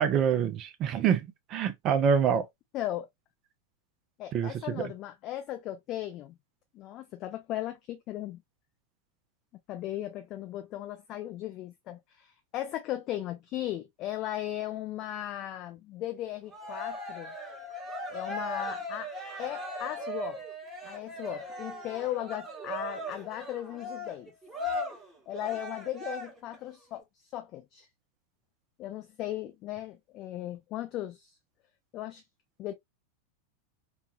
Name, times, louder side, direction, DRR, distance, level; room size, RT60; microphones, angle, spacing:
voice 1, 0.0-2.5 4.3-4.9, right 7 dB, 35° right, 0.5 m, -26 dB
voice 2, 2.7-3.1 4.2-6.4 6.7-8.4 9.7-17.3 18.1-19.1 19.4-20.4 20.8-24.3 25.3-27.0 27.3-27.9 28.8-31.3 31.9-32.2 32.6-32.7, left 13 dB, 35° left, 0.4 m, -37 dB
Cheering, 16.5-26.6, left 1 dB, 15° right, 1.2 m, -38 dB
3.1 x 2.3 x 2.3 m
figure-of-eight pair, 90°, 0 cm